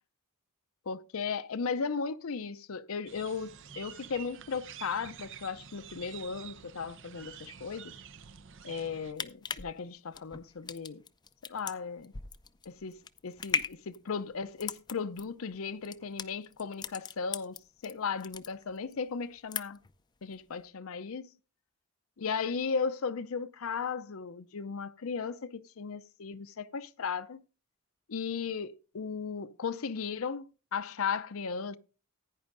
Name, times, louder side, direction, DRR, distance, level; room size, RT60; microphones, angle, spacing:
voice 1, 0.9-8.0 8.6-11.0 11.5-12.1 12.7-13.0 13.2-19.8 20.2-21.3 22.2-27.4 28.1-31.8, left 5 dB, 65° left, 0.6 m, -36 dB
sound 1, 3.1-9.1, right 8 dB, 60° right, 0.7 m, -49 dB
sound 2, 8.9-17.9 18.2-19.0 19.3-20.0 20.3-20.4, left 5 dB, 20° left, 0.5 m, -38 dB
15.5 x 9.9 x 2.5 m
head